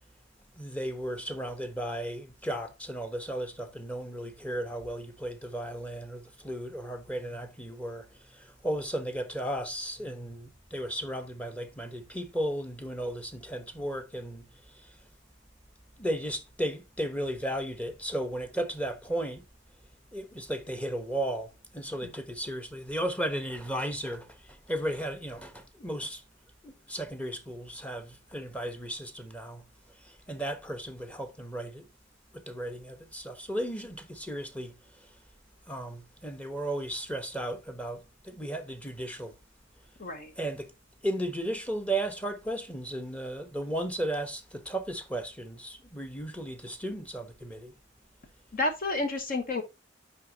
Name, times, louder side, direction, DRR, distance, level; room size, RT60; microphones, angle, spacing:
voice 1, 0.5-14.5 14.7-15.0 16.0-19.4 20.1-26.2 26.6-29.6 30.0-31.9 32.3-35.1 35.7-39.4 40.4-40.7 41.0-47.7, right 1 dB, 5° left, 1.0 m, -35 dB
voice 2, 40.0-40.3 48.5-49.6, left 2 dB, 45° left, 1.0 m, -30 dB
10.0 x 3.5 x 2.8 m
head